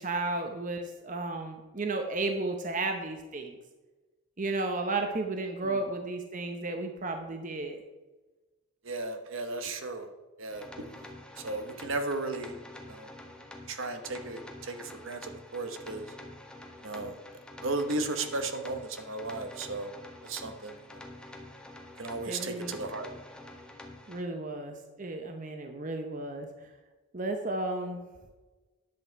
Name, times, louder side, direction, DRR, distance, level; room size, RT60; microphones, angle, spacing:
voice 1, 0.0-3.6 4.4-7.8 22.2-22.8 24.1-26.5 27.1-28.0, right 2 dB, 35° right, 5 dB, 0.8 m, -33 dB
voice 2, 8.8-10.1 10.4-10.9 11.4-12.6 12.9-13.1 13.7-16.1 16.8-17.2 17.6-19.9 20.2-21.0 22.0-23.1, right 2 dB, 65° right, 7 dB, 1.0 m, -35 dB
sound 1, 10.5-24.2, left 1 dB, 5° left, 0.9 m, -47 dB
10.5 x 7.9 x 4.6 m, 1.2 s
head